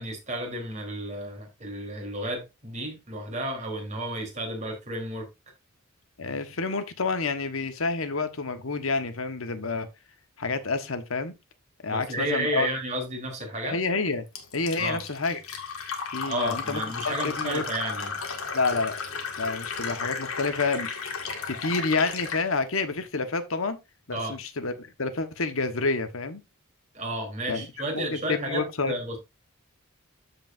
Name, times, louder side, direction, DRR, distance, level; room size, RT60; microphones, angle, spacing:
voice 1, 0.0-5.3 11.9-13.8 14.8-15.0 16.2-18.2 24.1-24.3 26.9-29.2, right 1 dB, 35° right, 3.3 m, -32 dB
voice 2, 6.2-9.9 10.4-11.3 11.8-12.7 13.6-14.2 14.5-15.4 16.1-17.6 18.5-19.0 19.4-20.9 21.5-23.8 24.1-26.4 27.5-27.7 27.9-28.9, left 3 dB, 70° left, 1.2 m, -28 dB
Fill (with liquid), 14.3-22.5, left 5 dB, 90° left, 1.9 m, -34 dB
13.5 x 5.0 x 2.5 m
head